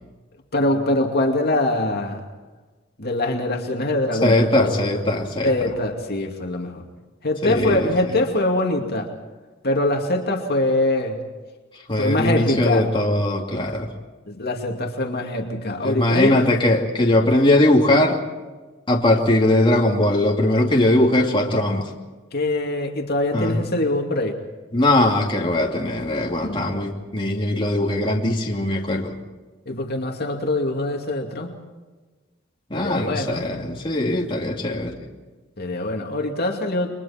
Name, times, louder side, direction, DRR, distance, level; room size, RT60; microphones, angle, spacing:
voice 1, 0.5-2.2 3.0-4.9 5.4-6.8 7.2-9.1 9.6-11.2 11.9-12.9 14.3-16.4 22.3-24.3 26.4-26.7 29.7-31.5 32.7-33.4 35.6-36.9, left 2 dB, 55° left, 2 dB, 2.6 m, -23 dB
voice 2, 4.2-5.5 7.4-7.9 11.9-13.9 15.8-18.2 18.9-21.9 23.3-23.7 24.7-29.1 32.7-34.9, left 1 dB, 25° left, -1 dB, 2.7 m, -20 dB
30.0 x 23.5 x 4.4 m, 1.3 s
head